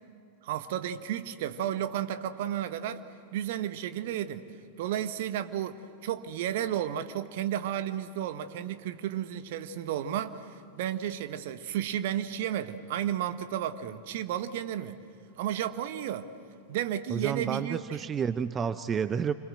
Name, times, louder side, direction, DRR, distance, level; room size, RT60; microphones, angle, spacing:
voice 1, 0.4-3.0 3.3-4.5 4.8-15.0 15.4-16.3 16.7-17.8, right 10 dB, 60° right, 11 dB, 1.4 m, -32 dB
voice 2, 17.1-19.3, right 7 dB, 25° right, 13 dB, 0.7 m, -30 dB
29.0 x 25.5 x 7.7 m, 2.4 s
figure-of-eight pair, 90°, 0 cm